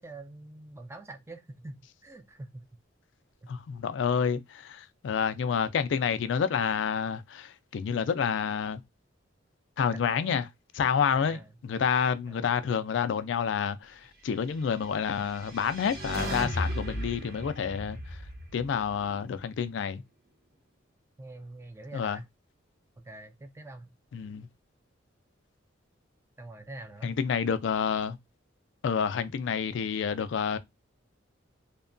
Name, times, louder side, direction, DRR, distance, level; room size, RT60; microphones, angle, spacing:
voice 1, 0.0-2.7 9.9-10.4 11.1-11.5 12.3-12.4 21.2-22.3 23.0-24.0 26.4-27.1, right 2 dB, 15° right, 0.3 m, -45 dB
voice 2, 3.5-8.8 9.8-10.4 10.7-18.0 18.5-20.0 21.9-22.2 24.1-24.5 27.0-28.2 28.8-30.6, left 7 dB, 65° left, 0.3 m, -29 dB
sound 1, 15.0-19.4, equal, 55° right, 0.9 m, -36 dB
2.8 x 2.2 x 2.5 m
head